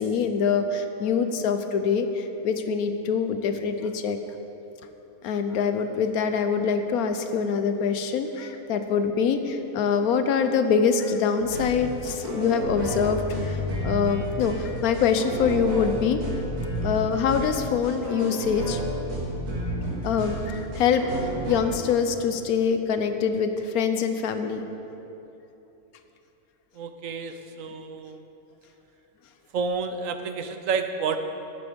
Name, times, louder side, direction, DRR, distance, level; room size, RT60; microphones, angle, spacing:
voice 1, 0.0-4.2 5.2-16.2 16.8-18.8 20.0-21.0 21.5-24.7, left 6 dB, 75° left, 8 dB, 1.2 m, -24 dB
sound 1, 11.4-21.6, right 1 dB, 90° right, 2.7 m, -31 dB
voice 2, 26.7-28.2 29.5-31.2, right 5 dB, 65° right, 8 dB, 1.0 m, -30 dB
11.0 x 9.5 x 5.2 m, 2.9 s
omnidirectional pair, 1.6 m